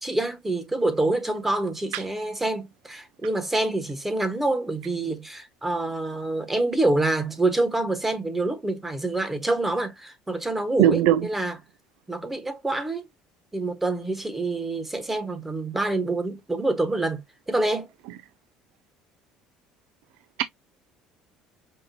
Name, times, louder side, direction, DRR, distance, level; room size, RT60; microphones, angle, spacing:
voice 1, 0.0-11.6 12.1-13.0 13.5-17.2 17.5-17.9, right 2 dB, 10° right, 1.2 m, -26 dB
voice 2, 10.8-11.2, right 12 dB, 80° right, 0.3 m, -18 dB
5.7 x 2.6 x 2.7 m
supercardioid pair, 105°, 2 cm